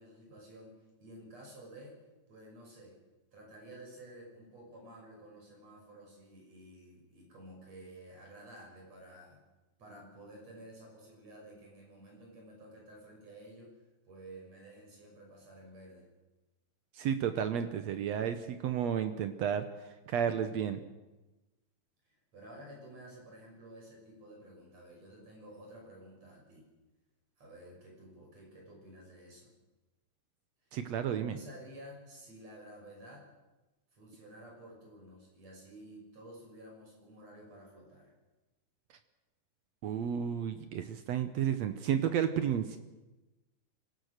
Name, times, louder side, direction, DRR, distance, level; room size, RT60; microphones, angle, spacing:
voice 1, 0.0-2.0 2.3-3.0 3.3-9.4 9.8-13.8 14.1-16.1 22.1-26.7 27.4-29.5 31.1-33.3 33.9-38.1, right 1 dB, 45° right, 0 dB, 7.2 m, -52 dB
voice 2, 16.9-19.7 20.1-20.8 30.7-31.4 39.8-42.8, right 9 dB, 75° right, 9 dB, 1.6 m, -32 dB
25.0 x 17.0 x 6.6 m, 1.1 s
omnidirectional pair, 4.3 m